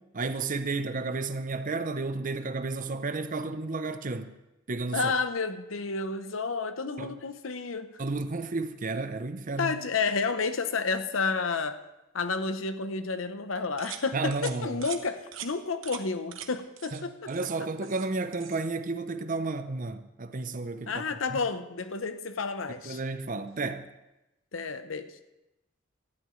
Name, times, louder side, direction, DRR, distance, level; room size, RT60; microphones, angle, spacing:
voice 1, 0.0-4.3 4.7-5.1 7.0-7.1 8.0-9.8 14.1-14.9 16.9-17.0 17.3-21.0 21.3-21.4 22.8-23.9, right 3 dB, 40° right, 0.7 m, -32 dB
voice 2, 4.9-8.0 9.6-11.8 12.1-17.3 20.9-23.0 24.5-25.1, left 4 dB, 75° left, 0.8 m, -31 dB
sound 1, 13.8-14.0 14.3-14.5 14.8-15.0 15.3-15.5 15.8-16.0 16.3-16.5 16.8-17.0 17.3-18.1 18.3-18.6, right 10 dB, 70° right, 1.0 m, -41 dB
18.5 x 12.5 x 3.2 m
head